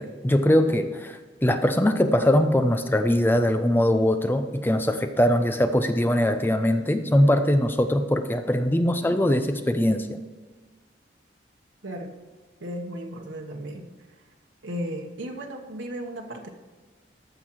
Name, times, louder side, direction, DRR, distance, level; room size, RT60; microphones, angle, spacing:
voice 1, 0.0-10.2, left 1 dB, 10° left, 8 dB, 0.5 m, -22 dB
voice 2, 11.8-12.1 12.6-13.9 14.6-16.5, equal, 90° right, 1 dB, 1.2 m, -35 dB
14.0 x 6.0 x 4.7 m, 1.4 s
head